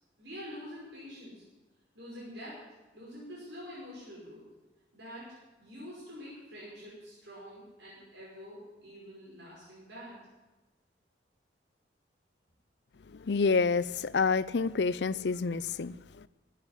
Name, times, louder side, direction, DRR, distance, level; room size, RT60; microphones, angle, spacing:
voice 1, 0.2-1.4 1.9-2.6 2.9-4.5 4.9-10.2, equal, 80° right, -7 dB, 5.5 m, -46 dB
voice 2, 13.1-16.3, left 4 dB, 75° left, 18 dB, 0.5 m, -28 dB
14.5 x 8.6 x 9.9 m, 1.1 s
head